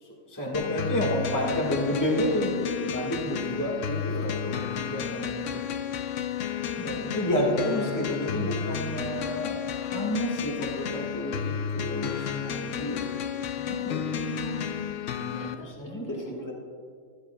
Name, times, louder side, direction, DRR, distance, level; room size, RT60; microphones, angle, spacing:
voice 1, 0.0-5.8 6.8-13.0 13.6-14.1 15.6-16.5, equal, 15° left, -3 dB, 1.6 m, -30 dB
sound 1, 0.5-15.5, left 8 dB, 70° left, 0.9 m, -32 dB
voice 2, 14.1-16.5, left 1 dB, 45° left, -3 dB, 1.8 m, -41 dB
14.5 x 10.5 x 2.3 m, 2.1 s
omnidirectional pair, 1.4 m